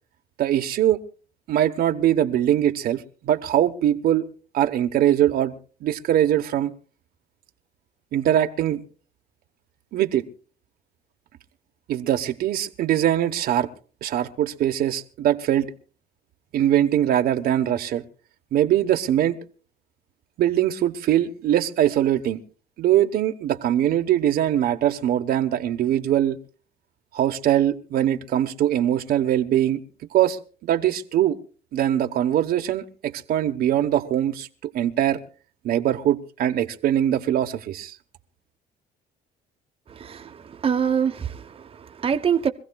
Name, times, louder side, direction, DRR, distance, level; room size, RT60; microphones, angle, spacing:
voice 1, 0.4-1.0 1.5-4.3 4.5-5.5 5.8-6.7 8.1-8.8 9.9-10.2 11.9-13.7 14.0-15.7 16.5-18.0 18.5-19.4 20.4-22.4 22.8-26.4 27.1-29.8 30.1-31.4 31.7-35.2 35.6-38.0, right 11 dB, 65° right, 1.1 m, -22 dB
voice 2, 39.9-42.5, right 7 dB, 35° right, 0.9 m, -25 dB
25.0 x 15.5 x 2.3 m
cardioid pair, 110°, 17 cm